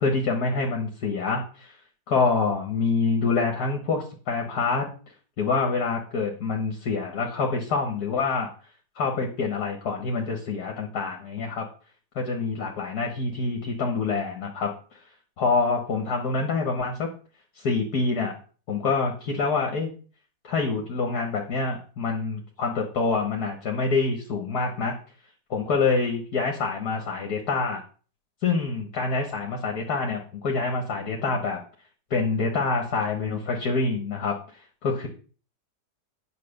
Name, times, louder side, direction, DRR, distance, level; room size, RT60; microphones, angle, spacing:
voice 1, 0.0-1.8 2.1-4.9 5.4-8.5 9.0-11.7 12.2-15.0 15.4-17.1 17.6-18.4 18.7-19.9 20.4-24.9 25.5-27.8 28.4-31.6 32.1-34.4 34.8-35.1, left 4 dB, 65° left, 2 dB, 1.8 m, -26 dB
9.4 x 5.3 x 6.5 m, 0.39 s
omnidirectional pair, 1.9 m